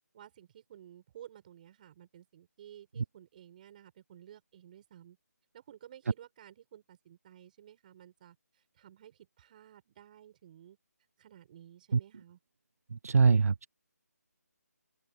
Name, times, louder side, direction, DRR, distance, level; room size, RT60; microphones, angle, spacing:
voice 1, 0.1-5.2 5.5-10.8 11.2-12.4, right 11 dB, 30° right, 7.6 m, -54 dB
voice 2, 13.0-13.7, right 5 dB, 60° right, 0.5 m, -23 dB
open air
figure-of-eight pair, 155°, 9 cm